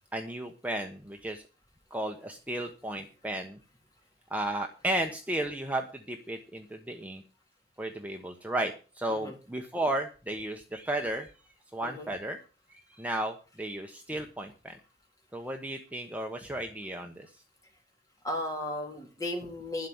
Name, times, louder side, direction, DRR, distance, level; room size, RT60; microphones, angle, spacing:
voice 1, 0.1-1.4 1.9-3.6 4.3-7.2 7.8-11.3 11.7-12.4 12.9-14.8 15.3-17.3, right 1 dB, 10° right, 3 dB, 1.1 m, -34 dB
voice 2, 11.8-12.1 18.2-19.9, left 1 dB, 20° left, 1 dB, 3.5 m, -35 dB
11.5 x 5.8 x 8.6 m, 0.36 s
head